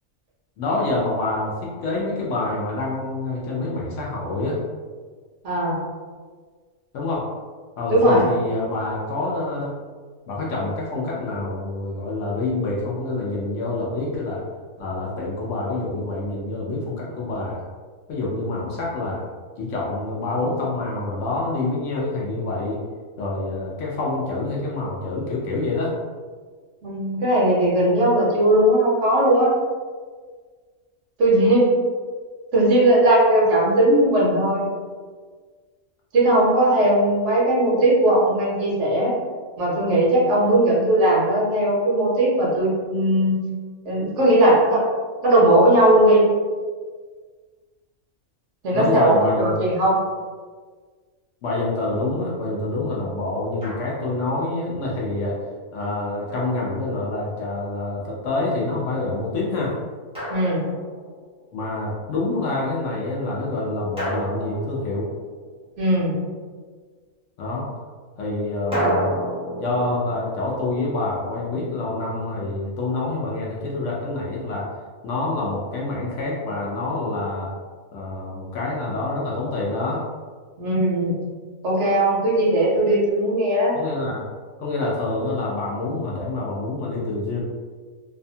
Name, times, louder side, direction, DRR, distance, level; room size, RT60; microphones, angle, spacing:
voice 1, 0.6-4.6 6.9-7.2 7.8-9.7 10.3-14.4 14.8-17.6 18.1-19.2 19.6-22.8 23.2-25.9 48.7-49.5 51.4-55.4 55.7-59.7 61.5-65.1 67.4-67.7 68.2-69.1 69.6-74.7 75.0-77.5 77.9-80.0 83.7-84.2 84.6-87.4, left 2 dB, 65° left, -4 dB, 0.8 m, -26 dB
voice 2, 5.4-5.8 7.9-8.2 26.8-29.5 31.2-31.8 32.5-34.7 36.1-39.1 39.6-43.4 43.8-44.8 45.2-46.2 48.6-50.0 60.3-60.6 65.8-66.1 80.6-81.1 81.6-83.7, right 1 dB, 65° right, -5 dB, 0.9 m, -18 dB
Drum, 53.6-54.3 56.3-57.4 60.1-61.3 64.0-65.6 68.7-71.7, right 1 dB, 10° right, 0.3 m, -31 dB
2.7 x 2.2 x 2.6 m, 1.5 s
omnidirectional pair, 1.5 m